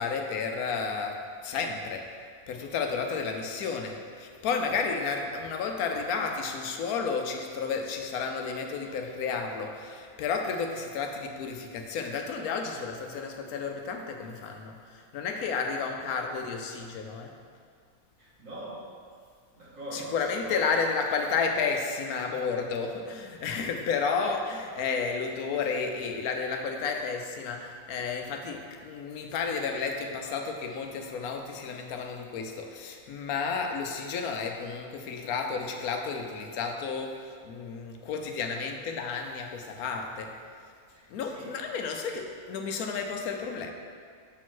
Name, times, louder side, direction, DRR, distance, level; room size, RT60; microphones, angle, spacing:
voice 1, 0.0-2.2 2.5-17.3 19.9-40.4 41.1-43.7, left 5 dB, 85° left, 4 dB, 1.1 m, -32 dB
voice 2, 18.2-18.9 19.5-20.7 40.9-41.6, right 1 dB, 65° right, -8 dB, 2.2 m, -41 dB
7.0 x 4.9 x 3.8 m, 2.1 s
omnidirectional pair, 1.5 m